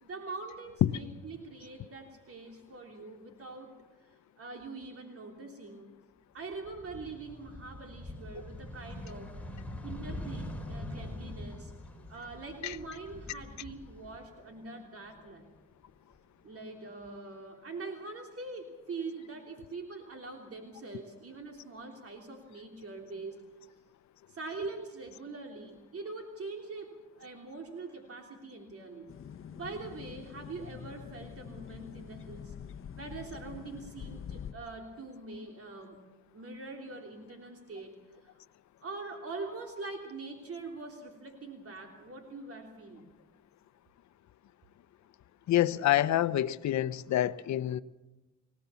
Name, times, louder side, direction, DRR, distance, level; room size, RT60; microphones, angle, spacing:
voice 1, 0.0-3.7 4.4-5.9 6.3-9.4 9.8-11.7 12.1-15.5 16.4-23.4 24.3-29.1 29.5-32.5 33.0-36.0 36.3-38.0 38.2-38.4 38.8-43.1, right 3 dB, 50° right, 3.3 m, -43 dB
sound 1, 6.5-14.6 15.0-16.2, left 1 dB, 5° left, 3.9 m, -43 dB
sound 2, 29.1-34.5, left 8 dB, 45° left, 1.0 m, -45 dB
voice 2, 45.5-47.8, left 13 dB, 65° left, 0.8 m, -27 dB
24.5 x 18.5 x 7.1 m
cardioid pair, 90°, 30 cm